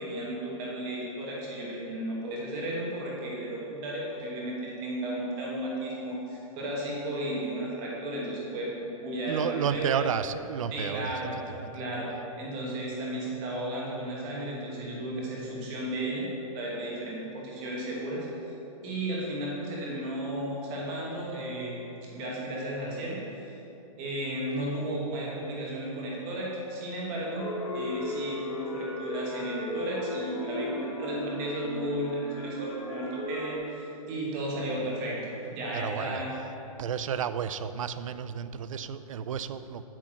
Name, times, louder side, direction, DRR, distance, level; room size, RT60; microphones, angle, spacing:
voice 1, 0.0-10.0 10.7-11.3 11.7-12.1 12.4-16.3 16.5-18.3 18.8-21.8 22.1-23.6 24.0-27.5 27.7-36.3, right 1 dB, 20° right, -4 dB, 1.2 m, -34 dB
voice 2, 9.3-11.1 11.6-11.7 35.7-36.2 36.8-39.8, right 8 dB, 60° right, 13 dB, 0.4 m, -31 dB
sound 1, 27.3-33.6, left 1 dB, 40° left, 1.2 m, -36 dB
8.7 x 4.0 x 6.1 m, 3.0 s
hypercardioid pair, 175°, 19 cm